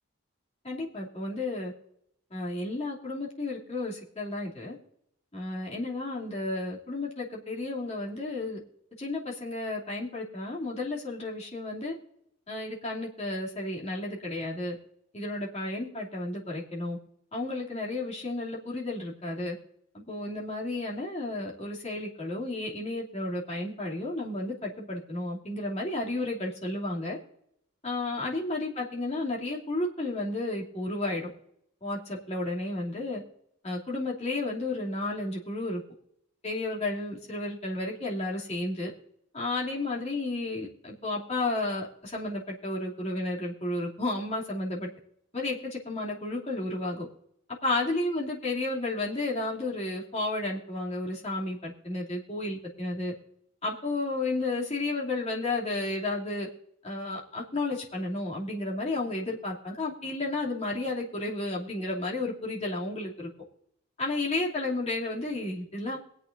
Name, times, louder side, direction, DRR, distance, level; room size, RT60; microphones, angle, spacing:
voice 1, 0.6-1.7 2.3-4.8 5.3-8.6 9.0-12.0 12.5-14.8 15.1-17.0 17.3-19.6 19.9-27.2 27.8-31.3 31.8-33.2 33.6-35.8 36.4-38.9 39.3-44.9 45.3-47.1 47.6-53.1 53.6-56.5 56.8-63.3 64.0-66.0, left 2 dB, 30° left, -4 dB, 2.8 m, -32 dB
23.0 x 8.4 x 2.6 m, 0.72 s
head